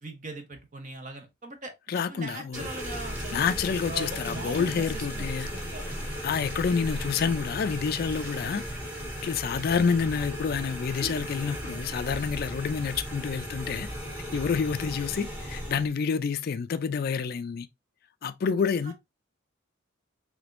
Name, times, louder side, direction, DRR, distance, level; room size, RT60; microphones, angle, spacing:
voice 1, 0.0-3.4 3.9-6.2 18.8-18.9, right 2 dB, 40° right, 0.7 m, -41 dB
voice 2, 1.9-2.7 3.3-5.5 6.2-8.6 9.2-13.9 14.3-17.7 18.2-18.9, left 6 dB, 45° left, 0.3 m, -28 dB
sound 1, 2.5-15.9, equal, 10° right, 1.0 m, -36 dB
3.4 x 3.3 x 2.5 m
head